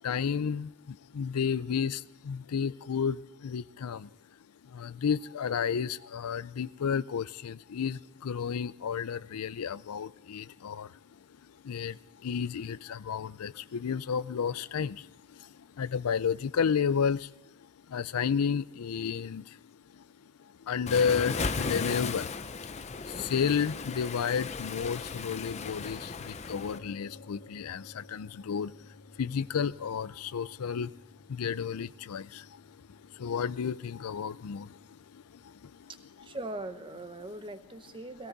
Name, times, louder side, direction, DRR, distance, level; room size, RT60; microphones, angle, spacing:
voice 1, 0.0-4.1 4.6-10.9 11.6-17.3 17.9-19.6 19.9-20.0 20.6-22.3 23.0-30.9 31.3-35.9, left 7 dB, 90° left, 0.4 m, -32 dB
Waves surf, 20.9-26.8, left 4 dB, 30° left, 0.5 m, -36 dB
sound 1, 26.7-35.8, left 2 dB, 60° left, 1.6 m, -56 dB
voice 2, 35.9-38.3, right 2 dB, 25° right, 0.7 m, -41 dB
17.0 x 17.0 x 4.0 m
head